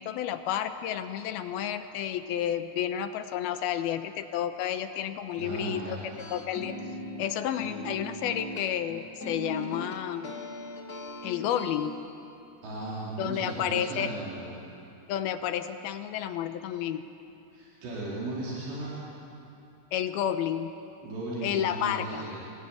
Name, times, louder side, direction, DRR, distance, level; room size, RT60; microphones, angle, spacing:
voice 1, 0.0-6.0 6.3-6.7 7.2-10.3 11.2-12.0 13.2-14.1 15.1-17.1 19.9-20.8 21.4-22.3, left 10 dB, 75° left, 9 dB, 2.6 m, -31 dB
voice 2, 5.4-6.0 12.6-14.5 17.5-19.0 21.0-22.4, right 2 dB, 85° right, -7 dB, 6.4 m, -36 dB
sound 1, 6.1-11.9, left 1 dB, 50° left, 1.1 m, -40 dB
27.5 x 19.5 x 10.0 m, 2.8 s
omnidirectional pair, 4.9 m